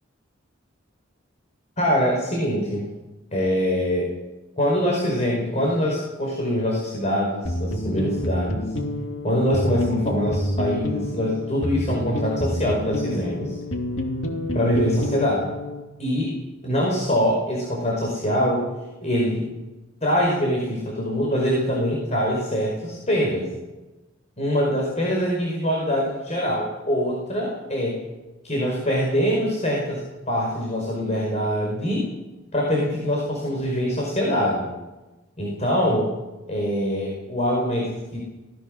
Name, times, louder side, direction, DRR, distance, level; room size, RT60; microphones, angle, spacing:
voice 1, 1.8-2.8 3.3-4.1 4.6-8.6 9.2-13.6 14.5-15.5 16.0-16.3 16.6-18.6 19.0-19.5 20.0-23.5 24.4-28.0 28.4-30.0 30.3-32.1 32.5-34.7 35.4-36.1 36.5-38.2, equal, 35° left, -1 dB, 5.1 m, -24 dB
sound 1, 7.4-15.9, left 1 dB, 90° left, 2.8 m, -28 dB
26.0 x 18.5 x 6.6 m, 1.1 s
head